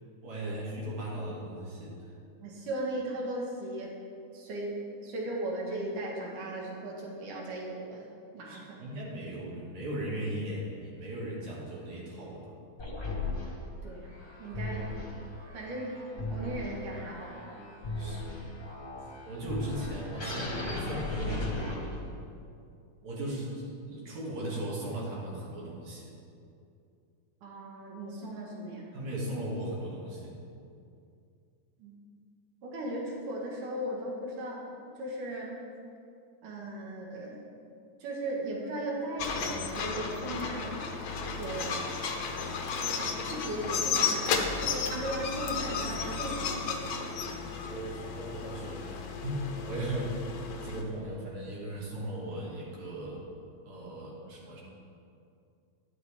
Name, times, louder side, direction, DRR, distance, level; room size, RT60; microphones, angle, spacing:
voice 1, 0.2-2.1 8.5-12.5 17.9-18.4 19.3-21.9 23.0-26.1 28.9-30.5 47.7-48.9 49.2-50.1 50.6-53.2 53.7-54.6, right 1 dB, 70° right, -6 dB, 3.5 m, -37 dB
voice 2, 2.4-4.0 4.3-8.0 8.3-8.7 13.8-14.1 14.4-14.9 15.5-16.0 16.3-17.7 27.4-28.9 31.8-31.9 32.6-34.7 35.0-35.6 36.4-37.4 38.0-40.8 41.4-41.9 42.8-47.1, right 1 dB, 90° right, -2 dB, 3.1 m, -37 dB
sound 1, 12.8-22.2, left 2 dB, 30° left, 1.1 m, -37 dB
sound 2, 39.2-50.8, left 5 dB, 85° left, 1.1 m, -33 dB
12.0 x 11.5 x 3.5 m, 2.5 s
omnidirectional pair, 3.6 m